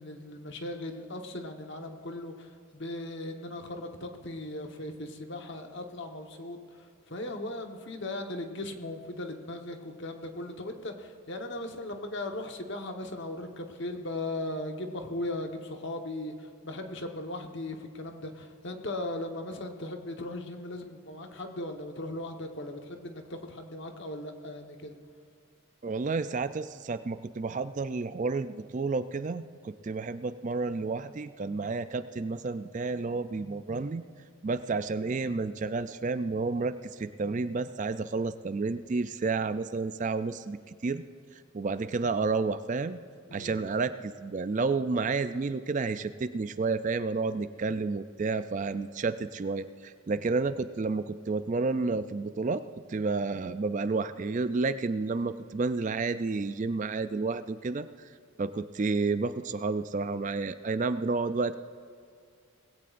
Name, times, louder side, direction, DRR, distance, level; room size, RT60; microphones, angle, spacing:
voice 1, 0.0-24.9 43.3-43.6, left 1 dB, 55° left, 4 dB, 1.2 m, -38 dB
voice 2, 25.8-34.0 34.4-40.6 40.8-41.0 41.5-43.0 43.3-52.6 52.9-58.1 58.4-61.6, right 4 dB, 35° right, 12 dB, 0.3 m, -30 dB
20.0 x 16.0 x 2.6 m, 2.3 s
head